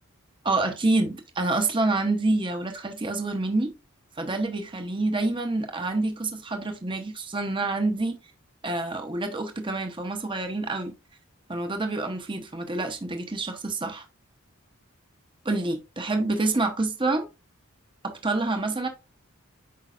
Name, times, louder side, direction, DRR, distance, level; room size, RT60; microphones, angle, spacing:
voice 1, 0.4-3.7 4.2-8.2 8.6-10.9 11.5-14.0 15.4-17.2 18.0-18.9, right 2 dB, 25° right, 0.9 m, -27 dB
8.5 x 5.2 x 2.5 m
head